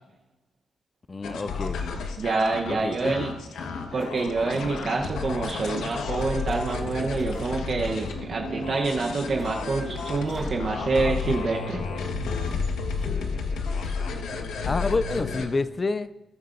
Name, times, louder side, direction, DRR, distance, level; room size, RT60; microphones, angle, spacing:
voice 1, 1.1-2.0 2.7-3.1 14.7-16.1, left 3 dB, 25° left, 13 dB, 0.3 m, -28 dB
sound 1, 1.2-15.5, left 4 dB, 90° left, 1.3 m, -32 dB
sound 2, 2.0-2.8 4.0-5.5 5.8-8.2 8.6-8.7 8.9-11.2 11.4-11.6 11.9-14.0, right 2 dB, 5° right, 3.5 m, -45 dB
voice 2, 2.2-3.3 3.9-11.8, right 3 dB, 45° right, 1 dB, 0.9 m, -27 dB
sound 3, 7.4-13.3, right 5 dB, 90° right, 1.5 m, -43 dB
20.5 x 9.4 x 2.6 m, 1.1 s
cardioid pair, 130°, 0 cm